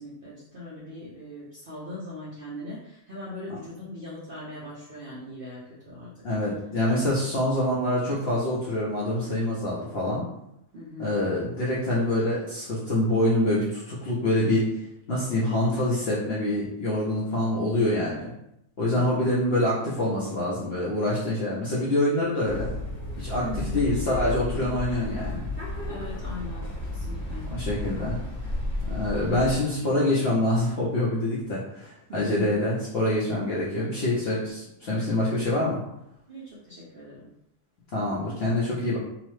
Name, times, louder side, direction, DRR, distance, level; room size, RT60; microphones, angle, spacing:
voice 1, 0.0-6.3 10.7-11.3 18.9-19.4 23.4-23.9 25.9-27.5 29.2-29.4 32.1-32.7 36.3-37.3, left 1 dB, 70° right, -7 dB, 0.5 m, -40 dB
voice 2, 6.2-10.2 11.0-14.7 15.1-18.3 18.8-22.7 23.2-23.4 23.7-25.4 27.5-28.2 28.9-35.8 37.9-39.0, left 1 dB, 60° left, -7 dB, 0.6 m, -25 dB
sound 1, 22.4-29.6, left 2 dB, 20° right, 1.0 m, -33 dB
2.9 x 2.0 x 3.0 m, 0.80 s
omnidirectional pair, 1.7 m